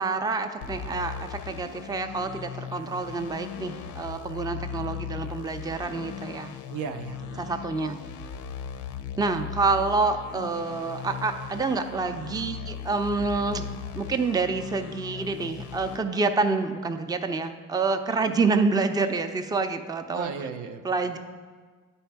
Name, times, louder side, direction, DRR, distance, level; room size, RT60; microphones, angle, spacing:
voice 1, 0.0-6.5 7.4-8.0 9.2-13.7 13.9-20.3 20.8-21.2, right 4 dB, 15° right, 7 dB, 0.5 m, -27 dB
sound 1, 0.6-16.0, left 7 dB, 90° left, 0.5 m, -38 dB
voice 2, 6.7-7.9 20.1-20.9, right 6 dB, 75° right, 7 dB, 0.7 m, -37 dB
9.9 x 4.4 x 4.6 m, 1.5 s
cardioid pair, 90°, 30 cm